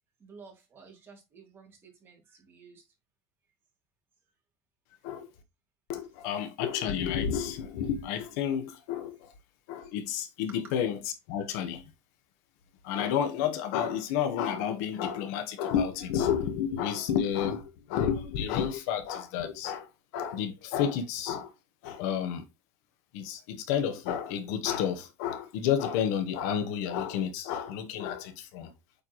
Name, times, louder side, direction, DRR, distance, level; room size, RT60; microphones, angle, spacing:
voice 1, 0.2-2.8 5.0-5.1 10.5-10.6, right 5 dB, 25° right, 3.2 m, -53 dB
voice 2, 5.9-9.3 9.7-11.0 11.3-11.8 12.8-21.5 21.8-22.4 23.1-28.7, left 8 dB, 80° left, 1.6 m, -30 dB
8.4 x 4.6 x 3.1 m
cardioid pair, 155°, 9 cm